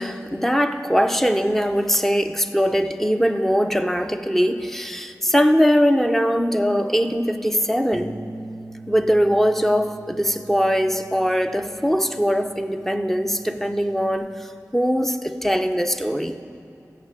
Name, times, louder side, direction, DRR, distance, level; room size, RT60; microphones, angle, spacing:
voice 1, 0.0-8.2 8.9-16.4, equal, 5° left, 8 dB, 0.6 m, -21 dB
Bass guitar, 7.9-14.2, right 2 dB, 15° right, 0.9 m, -42 dB
15.5 x 6.6 x 4.9 m, 2.6 s
wide cardioid pair, 50°, 6 cm